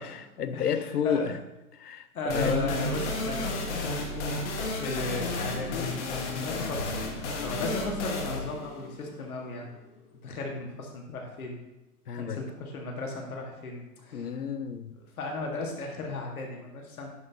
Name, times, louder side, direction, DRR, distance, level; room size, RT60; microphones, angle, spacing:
voice 1, 0.0-1.4 1.7-2.7 6.3-6.5 12.1-12.4 14.1-14.9, left 7 dB, 85° left, 12 dB, 0.8 m, -31 dB
voice 2, 0.5-1.4 2.1-3.6 3.9-4.4 4.8-6.9 7.1-9.7 10.2-11.6 12.1-14.4 15.2-17.1, left 3 dB, 65° left, 1 dB, 1.7 m, -35 dB
sound 1, 2.3-9.8, left 2 dB, 50° left, 1.4 m, -32 dB
10.5 x 5.5 x 2.8 m, 0.97 s
hypercardioid pair, 125°, 46 cm